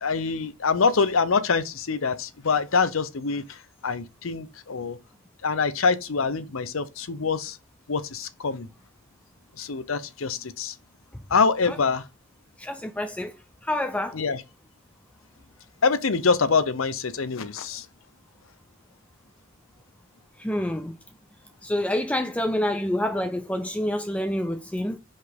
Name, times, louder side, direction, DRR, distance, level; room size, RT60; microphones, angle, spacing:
voice 1, 0.0-5.0 5.4-7.6 7.9-8.7 9.6-10.7 11.3-12.0 14.1-14.4 15.8-17.9, left 5 dB, 80° left, 0.7 m, -25 dB
voice 2, 12.6-13.3 13.6-14.2 20.4-20.9 21.6-25.0, left 1 dB, 5° left, 0.4 m, -27 dB
5.2 x 4.1 x 5.1 m
head